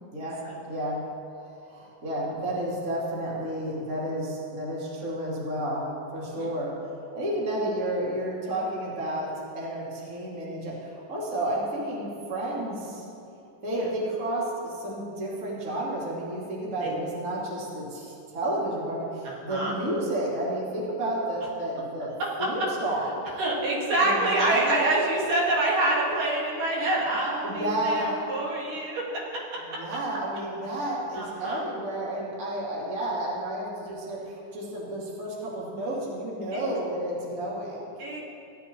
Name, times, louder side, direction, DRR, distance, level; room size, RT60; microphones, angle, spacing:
voice 1, 0.7-1.0 1.7-6.7 7.1-13.1 13.6-22.1 22.4-23.4 24.0-24.8 27.4-28.2 29.7-37.9, right 1 dB, 30° right, -6 dB, 2.0 m, -31 dB
voice 2, 19.2-19.7 23.4-29.2 29.5-29.8 31.1-31.6 36.5-36.6 38.0-38.2, right 2 dB, 75° right, -4 dB, 3.2 m, -27 dB
16.5 x 11.0 x 2.9 m, 2.7 s
omnidirectional pair, 3.9 m